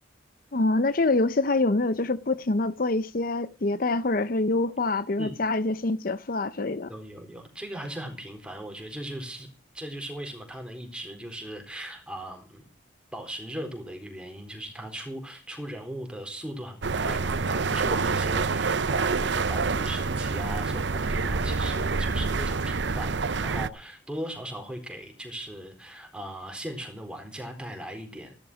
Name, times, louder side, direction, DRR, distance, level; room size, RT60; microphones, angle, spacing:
voice 1, 0.5-6.9, left 2 dB, 50° left, 0.7 m, -25 dB
voice 2, 6.9-9.5 9.7-12.7 13.1-28.3, equal, 5° right, 4.1 m, -38 dB
sound 1, 16.8-23.7, right 4 dB, 65° right, 0.8 m, -27 dB
15.5 x 12.0 x 6.2 m
head